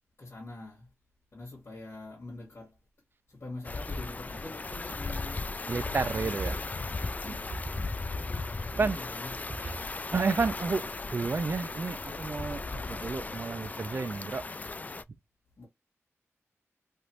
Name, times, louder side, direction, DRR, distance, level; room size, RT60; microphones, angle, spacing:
voice 1, 0.2-0.9 1.3-2.8 3.3-6.7 7.9-8.1 8.7-9.9 15.6-15.7, left 2 dB, 55° left, 1.6 m, -45 dB
sound 1, 3.6-15.0, left 3 dB, 30° left, 0.3 m, -37 dB
voice 2, 5.7-6.5 7.2-7.4 7.7-7.9 8.8-9.0 9.6-9.7 10.1-14.4, right 4 dB, 45° right, 0.4 m, -31 dB
3.3 x 2.5 x 2.8 m
wide cardioid pair, 85°, 5 cm